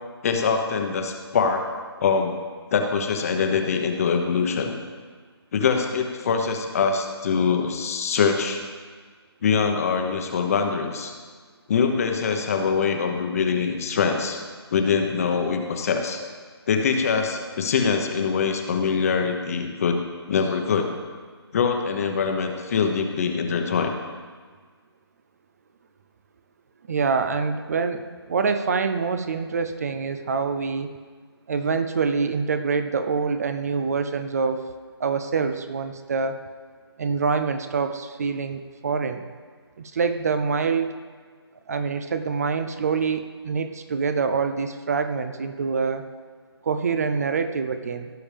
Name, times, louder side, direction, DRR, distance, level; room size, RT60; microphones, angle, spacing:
voice 1, 0.2-2.3 2.7-4.7 5.5-8.6 9.4-11.1 11.7-14.4 14.7-16.2 16.7-20.0 20.3-20.9 21.5-23.9, left 5 dB, 35° left, 4 dB, 1.0 m, -23 dB
voice 2, 26.9-30.9 31.5-34.6 35.0-36.4 37.0-39.2 39.8-41.0 41.7-46.0 46.6-48.1, right 5 dB, 35° right, 9 dB, 0.5 m, -25 dB
17.0 x 7.0 x 3.5 m, 1.5 s
figure-of-eight pair, 160°, 14 cm